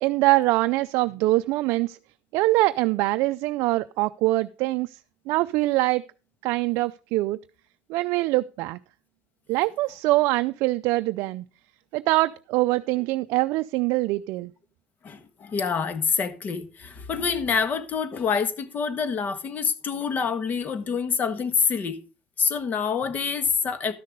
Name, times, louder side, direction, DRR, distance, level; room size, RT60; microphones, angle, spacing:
voice 1, 0.0-2.0 2.3-5.0 5.3-6.0 6.4-7.4 7.9-8.8 9.5-11.4 11.9-14.5, right 19 dB, 65° right, 0.4 m, -23 dB
voice 2, 15.0-22.0 22.4-23.9, left 6 dB, 35° left, 1.4 m, -26 dB
12.5 x 6.6 x 5.2 m
supercardioid pair, 120°, 5 cm